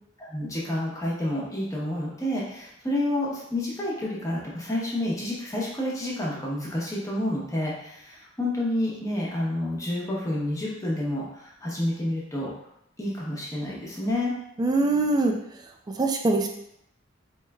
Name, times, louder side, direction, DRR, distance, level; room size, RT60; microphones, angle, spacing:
voice 1, 0.2-12.5 13.0-14.3, left 1 dB, 15° left, -5 dB, 0.8 m, -29 dB
voice 2, 14.6-15.3 16.0-16.5, right 2 dB, 20° right, 2 dB, 0.3 m, -22 dB
4.4 x 3.1 x 2.3 m, 0.76 s
head